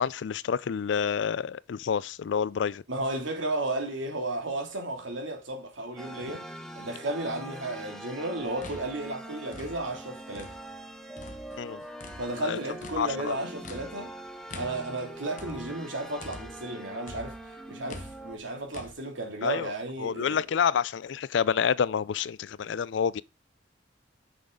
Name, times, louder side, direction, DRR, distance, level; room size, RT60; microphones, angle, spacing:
voice 1, 0.0-2.8 11.6-11.8 12.4-12.6 13.0-13.4 19.4-19.7 20.0-23.2, left 7 dB, 70° left, 0.4 m, -28 dB
voice 2, 2.9-6.5 6.8-10.5 12.2-14.1 14.5-17.3 17.7-20.4, right 2 dB, 85° right, 2.6 m, -33 dB
sound 1, 6.0-18.4, right 1 dB, ahead, 0.8 m, -43 dB
sound 2, 8.4-10.8 11.2-16.7 17.1-18.9, left 2 dB, 40° left, 1.1 m, -46 dB
8.4 x 6.2 x 3.8 m
head